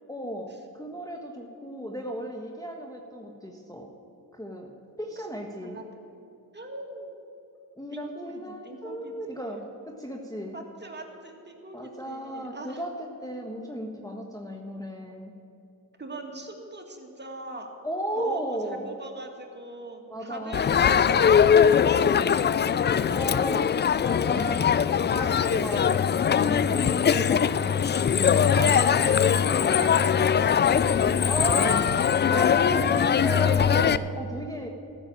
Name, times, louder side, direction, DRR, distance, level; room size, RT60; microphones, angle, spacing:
voice 1, 0.1-3.9 4.3-4.7 5.0-5.8 7.8-10.6 11.7-15.3 17.8-18.9 20.1-21.0 23.1-23.7 24.0-24.7 25.1-28.4 31.3-31.9 32.3-34.7, equal, 10° left, 0 dB, 1.4 m, -35 dB
voice 2, 5.6-6.0 6.5-7.1 7.9-9.4 10.5-12.8 16.0-17.7 18.2-22.0 22.3-23.2 25.7-25.9 28.5-30.6 31.5-32.1 32.6-33.0, right 2 dB, 20° right, 3 dB, 2.1 m, -40 dB
Crowd, 20.5-34.0, left 7 dB, 25° left, 0.3 m, -21 dB
13.5 x 6.8 x 8.8 m, 2.7 s
supercardioid pair, 50°, 46 cm